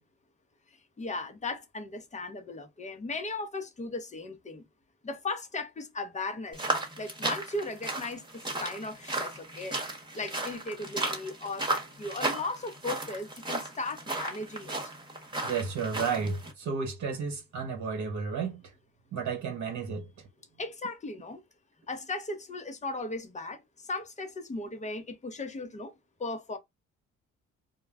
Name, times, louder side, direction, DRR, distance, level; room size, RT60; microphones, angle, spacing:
voice 1, 1.0-4.6 5.0-6.6 7.0-9.8 10.1-14.8 20.6-21.4 21.9-25.9 26.2-26.6, left 2 dB, 25° left, 0.7 m, -37 dB
sound 1, 6.5-16.5, right 2 dB, 15° right, 1.1 m, -35 dB
voice 2, 15.4-18.6 19.1-20.1, right 5 dB, 75° right, 1.0 m, -32 dB
2.2 x 2.1 x 3.4 m
cardioid pair, 90°, 30 cm